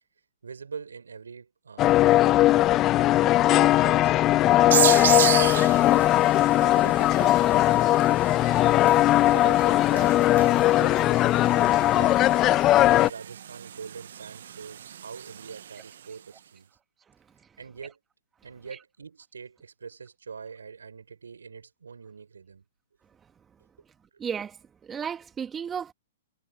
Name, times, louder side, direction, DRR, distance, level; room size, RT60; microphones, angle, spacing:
voice 1, 0.4-2.7 3.2-6.1 6.6-8.3 9.3-12.6 13.0-16.7 17.6-18.0 18.4-22.6, right 5 dB, 85° right, 5.4 m, -43 dB
sound 1, 1.8-13.1, left 15 dB, 30° left, 0.5 m, -19 dB
sound 2, 4.7-16.1, right 10 dB, 65° right, 0.4 m, -32 dB
voice 2, 24.2-24.6 24.8-25.9, right 7 dB, 15° right, 1.7 m, -33 dB
hypercardioid pair, 120°, 0 cm